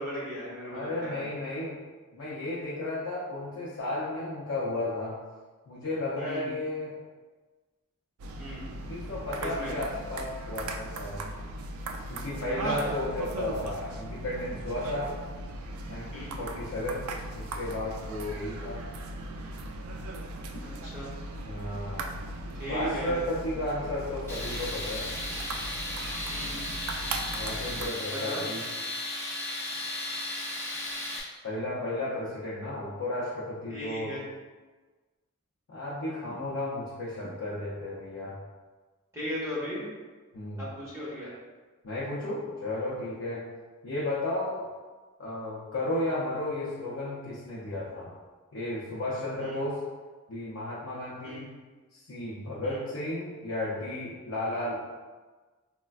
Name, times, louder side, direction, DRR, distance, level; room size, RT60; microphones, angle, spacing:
voice 1, 0.0-1.2 6.2-6.5 8.4-8.7 9.4-9.7 12.5-12.9 16.1-16.4 20.6-21.1 22.6-23.2 26.3-26.7 28.1-28.4 33.7-34.2 39.1-39.8 40.6-41.3 49.4-49.6 51.2-51.4 52.6-52.8, equal, 15° right, -9 dB, 1.0 m, -37 dB
voice 2, 0.7-1.8 2.1-5.2 5.7-7.0 8.8-11.2 12.1-15.1 15.9-18.8 21.4-22.2 22.7-25.1 27.3-28.7 31.4-34.2 35.7-38.4 40.3-40.7 41.8-43.5 43.8-44.7 45.2-48.1 48.5-49.8 50.3-51.5 51.9-54.9, left 1 dB, 70° left, -7 dB, 0.5 m, -33 dB
sound 1, 8.2-27.9, right 2 dB, 85° right, 0.3 m, -38 dB
Tools, 24.3-31.2, left 1 dB, 10° left, 0.4 m, -35 dB
4.1 x 2.1 x 2.3 m, 1.3 s
head